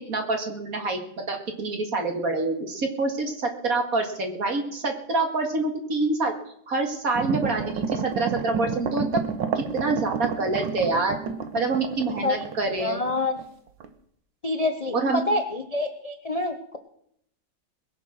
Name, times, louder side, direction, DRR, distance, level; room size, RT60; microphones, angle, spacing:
voice 1, 0.1-1.0 1.3-6.3 6.7-9.2 9.6-11.2 11.5-13.0 14.9-15.2, right 3 dB, 45° right, 4 dB, 2.3 m, -26 dB
sound 1, 7.1-13.5 13.8-13.9, right 6 dB, 70° right, 1.7 m, -30 dB
voice 2, 12.8-13.4 14.4-14.9 15.3-16.8, left 2 dB, 35° left, 6 dB, 0.5 m, -26 dB
21.5 x 7.3 x 6.3 m, 0.71 s
omnidirectional pair, 2.1 m